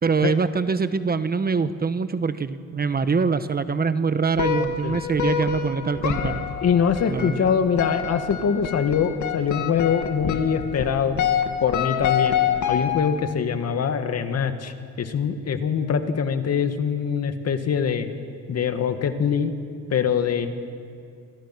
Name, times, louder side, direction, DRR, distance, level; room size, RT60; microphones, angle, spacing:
voice 1, 0.0-6.4 7.1-7.5, right 5 dB, 30° right, 11 dB, 1.1 m, -24 dB
sound 1, 4.4-13.3, left 8 dB, 70° left, 2.5 m, -27 dB
voice 2, 4.6-5.0 6.6-11.3 11.6-12.4 12.7-18.1 18.5-19.5 19.9-20.5, left 7 dB, 55° left, 7 dB, 2.1 m, -23 dB
28.0 x 26.5 x 6.1 m, 2.3 s
cardioid pair, 90°, 30 cm